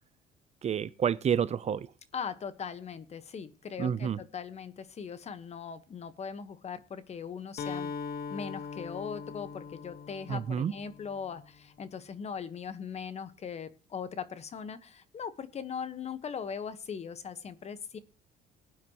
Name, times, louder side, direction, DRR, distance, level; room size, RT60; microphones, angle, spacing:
voice 1, 0.6-1.9 3.8-4.2 10.3-10.7, right 8 dB, 40° right, 0.6 m, -29 dB
voice 2, 2.1-7.9 8.3-18.0, left 6 dB, 40° left, 1.3 m, -40 dB
Acoustic guitar, 7.6-11.4, left 5 dB, 65° left, 1.2 m, -40 dB
20.0 x 9.4 x 3.0 m
cardioid pair, 110°, 17 cm